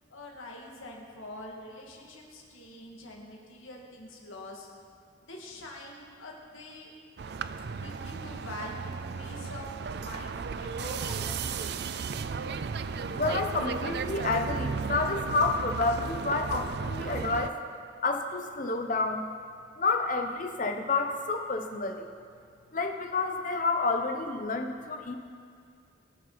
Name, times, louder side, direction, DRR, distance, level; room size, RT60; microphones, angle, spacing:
voice 1, 0.1-4.7 5.3-6.9 7.7-11.9, left 1 dB, 90° left, -1 dB, 2.1 m, -45 dB
sound 1, 7.2-17.5, right 5 dB, 55° right, 0.4 m, -34 dB
voice 2, 13.1-17.6 18.0-19.3 19.8-22.1 22.7-25.2, left 3 dB, 40° left, 4 dB, 0.9 m, -29 dB
21.5 x 7.2 x 4.1 m, 2.2 s
head